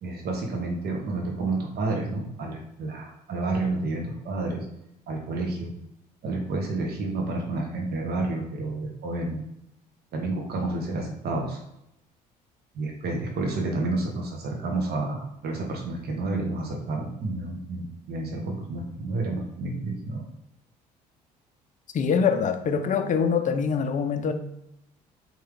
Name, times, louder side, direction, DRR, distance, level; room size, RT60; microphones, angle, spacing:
voice 1, 0.0-4.6 5.1-5.7 6.2-9.4 10.1-11.6 12.7-20.2, right 2 dB, 50° right, 1 dB, 1.1 m, -30 dB
voice 2, 21.9-24.3, left 6 dB, 35° left, 8 dB, 0.6 m, -24 dB
3.7 x 2.9 x 3.4 m, 0.82 s
figure-of-eight pair, 55°, 21 cm